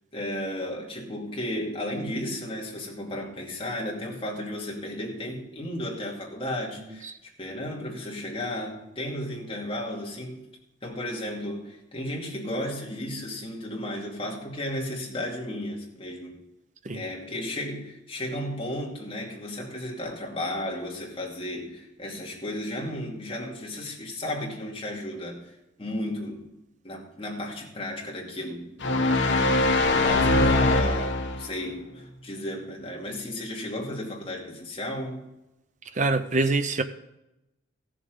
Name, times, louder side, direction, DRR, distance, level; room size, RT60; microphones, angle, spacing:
voice 1, 0.1-10.5 10.8-16.4 16.9-26.4 26.8-28.7 29.2-29.6 29.9-35.2, left 1 dB, 25° left, 2.5 m, -34 dB
sound 1, 28.8-31.6, left 2 dB, 60° left, 1.2 m, -22 dB
voice 2, 35.9-36.8, right 3 dB, 35° right, 0.7 m, -25 dB
15.5 x 7.2 x 5.2 m
head